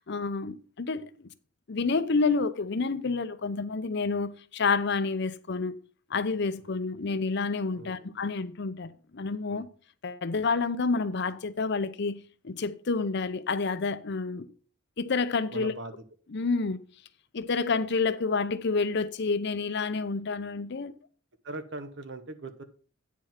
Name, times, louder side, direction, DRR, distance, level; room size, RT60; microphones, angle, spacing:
voice 1, 0.1-1.1 1.7-5.8 6.1-9.7 10.0-14.5 15.0-15.7 16.3-16.8 17.3-20.9, left 4 dB, 55° left, 0.6 m, -29 dB
voice 2, 7.7-8.1 9.5-9.7 15.5-16.0 21.4-22.6, right 2 dB, 60° right, 1.0 m, -40 dB
9.2 x 4.9 x 5.7 m
head